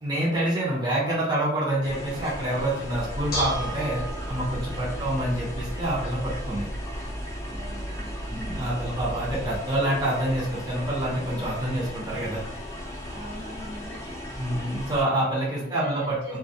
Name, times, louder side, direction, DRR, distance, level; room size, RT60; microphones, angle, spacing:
voice 1, 0.0-4.0 4.3-6.7 8.3-12.4 14.4-16.4, right 1 dB, 25° right, -6 dB, 0.6 m, -27 dB
sound 1, 1.8-15.0, equal, 15° left, 0.4 m, -37 dB
Bell / Dishes pots and pans, 2.9-9.6, equal, 55° left, 0.7 m, -35 dB
voice 2, 7.5-8.7 13.1-14.1 15.6-16.4, left 1 dB, 80° right, -4 dB, 0.9 m, -42 dB
2.2 x 2.1 x 2.7 m, 0.83 s
head